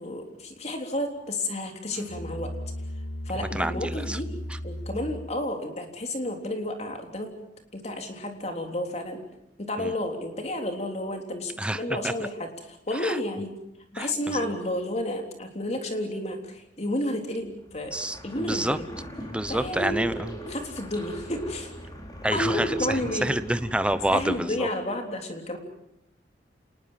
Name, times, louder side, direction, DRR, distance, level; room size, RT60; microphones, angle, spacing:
voice 1, 0.0-2.5 3.3-4.3 4.6-7.3 7.7-9.2 9.6-13.5 13.9-18.0 18.2-18.9 19.5-20.0 20.5-21.7 22.3-23.4 24.1-25.6, left 1 dB, 35° left, 4 dB, 3.5 m, -31 dB
Musical instrument, 1.9-5.4, left 1 dB, 80° left, 2.5 m, -36 dB
voice 2, 3.5-4.2 9.8-9.9 11.6-12.1 13.0-13.2 13.9-14.4 17.9-18.8 19.2-20.3 22.2-23.0 23.2-24.7, right 1 dB, 5° right, 12 dB, 0.9 m, -28 dB
Atmosphere - Stonecave with water (Loop), 17.5-24.4, equal, 20° left, 4.6 m, -39 dB
27.5 x 20.0 x 7.6 m, 0.81 s
head